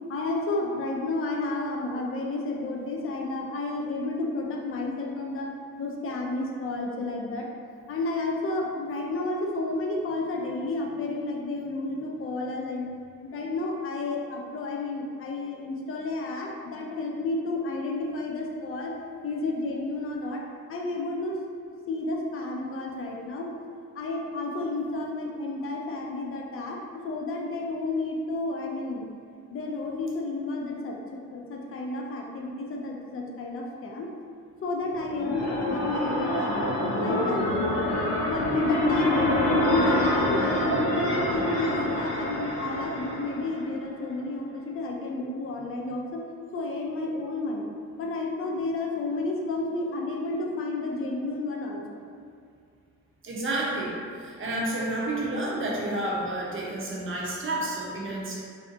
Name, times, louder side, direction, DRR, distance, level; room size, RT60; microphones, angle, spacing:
voice 1, 0.1-5.5 5.8-7.5 7.9-12.9 13.2-18.9 19.2-20.4 20.7-21.4 21.9-23.5 24.0-29.1 29.5-34.1 34.6-36.7 37.0-37.5 37.7-37.9 38.2-39.3 39.5-46.2 46.5-47.7 48.0-51.8, left 2 dB, 35° left, 0 dB, 0.5 m, -31 dB
sound 1, 34.9-43.7, left 1 dB, 85° left, 0.6 m, -26 dB
voice 2, 53.2-58.4, right 1 dB, 35° right, -4 dB, 0.7 m, -30 dB
2.7 x 2.1 x 2.5 m, 2.3 s
supercardioid pair, 60°, 38 cm